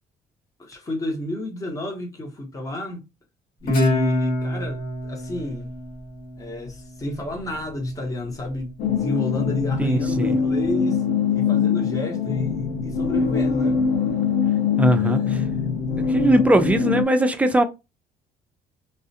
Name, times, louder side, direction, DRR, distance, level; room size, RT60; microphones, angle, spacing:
voice 1, 0.6-3.0 3.6-5.7 6.4-11.0 11.3-13.8 15.0-15.4, left 1 dB, 20° left, 0.8 m, -31 dB
Guitar, 3.7-6.9, left 1 dB, 55° left, 1.1 m, -26 dB
sound 1, 8.8-17.1, left 6 dB, 90° left, 0.6 m, -23 dB
voice 2, 9.8-10.4 14.8-15.4 16.1-17.6, right 1 dB, 10° right, 0.4 m, -20 dB
2.4 x 2.1 x 2.6 m
cardioid pair, 110°, 17 cm